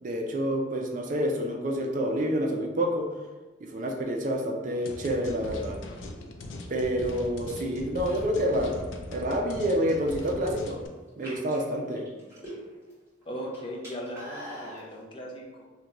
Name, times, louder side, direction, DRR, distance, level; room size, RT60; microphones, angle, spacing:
voice 1, 0.0-3.1 3.6-5.8 6.7-8.7 9.1-10.8 11.2-12.1, equal, 40° right, 1 dB, 0.4 m, -28 dB
sound 1, 4.9-10.9, left 1 dB, 85° left, 0.4 m, -40 dB
sound 2, 10.0-10.5 11.1-12.9 13.2-14.9, equal, 15° right, 1.5 m, -42 dB
voice 2, 13.3-15.6, equal, 30° left, -3 dB, 0.5 m, -38 dB
2.9 x 2.2 x 3.7 m, 1.3 s
head